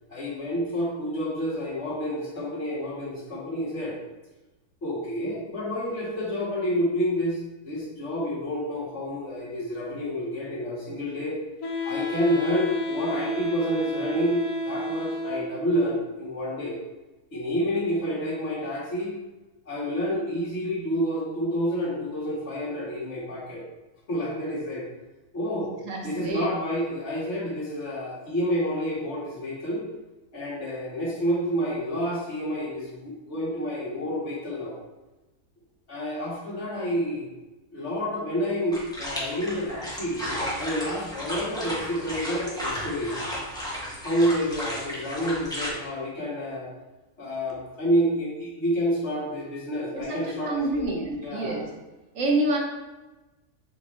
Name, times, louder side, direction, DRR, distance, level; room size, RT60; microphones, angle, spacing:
voice 1, 0.1-4.0 4.8-7.4 7.7-11.4 11.8-16.8 17.3-19.1 19.6-23.6 24.1-24.9 25.3-25.7 26.0-29.8 30.3-34.8 35.9-37.3 37.7-43.2 44.0-46.7 47.2-50.9 51.2-51.6, equal, 50° left, -6 dB, 2.3 m, -29 dB
Wind instrument woodwind instrument, 11.6-15.7, left 1 dB, 70° left, 1.3 m, -31 dB
voice 2, 25.9-26.5 49.9-51.7 52.1-52.6, right 2 dB, 60° right, 0 dB, 1.6 m, -27 dB
sound 1, 38.7-45.7, equal, 5° left, 1.3 m, -34 dB
6.9 x 4.9 x 3.3 m, 1.1 s
omnidirectional pair, 1.6 m